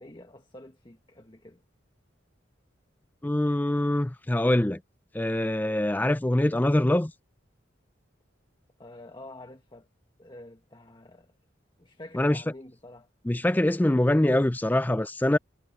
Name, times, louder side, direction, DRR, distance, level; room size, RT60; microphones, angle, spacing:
voice 1, 0.0-1.6 8.8-9.9 10.2-11.3 11.8-13.1, left 1 dB, 25° left, 1.5 m, -48 dB
voice 2, 3.2-4.8 5.1-7.1 12.1-12.4 13.3-15.4, left 1 dB, 10° left, 0.4 m, -24 dB
head